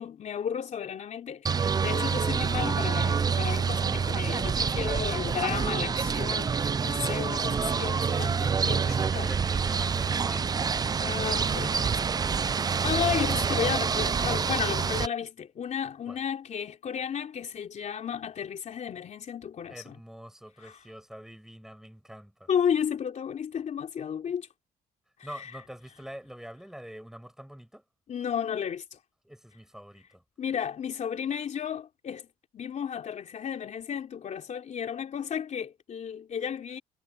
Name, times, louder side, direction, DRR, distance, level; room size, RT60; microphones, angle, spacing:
voice 1, 0.0-9.3 11.0-12.0 12.6-20.0 20.6-20.8 22.5-24.5 25.3-25.5 28.1-29.0 30.4-32.3 32.5-36.8, left 8 dB, 45° left, 3.2 m, -33 dB
sound 1, 1.5-15.1, right 6 dB, 25° right, 0.5 m, -27 dB
voice 2, 5.1-5.6 8.9-10.8 16.1-16.2 19.7-22.5 25.2-27.8 29.2-30.2, equal, 5° right, 7.2 m, -45 dB
cardioid pair, 110°, 17 cm